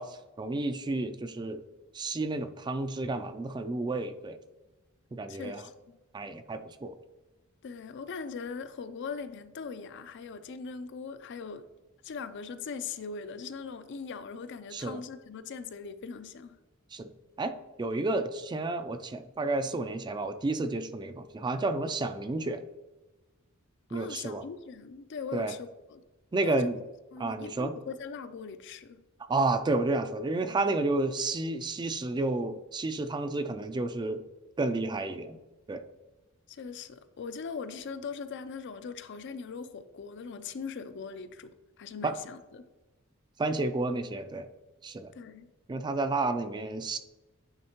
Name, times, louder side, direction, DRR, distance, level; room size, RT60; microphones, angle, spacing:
voice 1, 0.0-1.6 1.9-4.4 5.1-5.6 6.1-6.9 14.7-15.0 16.9-17.1 17.4-22.6 23.9-24.4 25.3-25.5 26.3-26.8 27.2-27.7 29.3-34.2 34.6-35.4 35.7-35.8 42.0-42.1 43.4-44.5 44.8-45.1 45.7-47.0, right 2 dB, 20° right, 10 dB, 0.3 m, -31 dB
voice 2, 5.3-6.0 7.6-11.7 12.0-16.6 23.9-26.0 26.4-26.7 27.1-29.0 36.5-42.6 45.1-45.5, left 5 dB, 55° left, 11 dB, 0.4 m, -40 dB
9.5 x 3.6 x 2.9 m, 1.1 s
head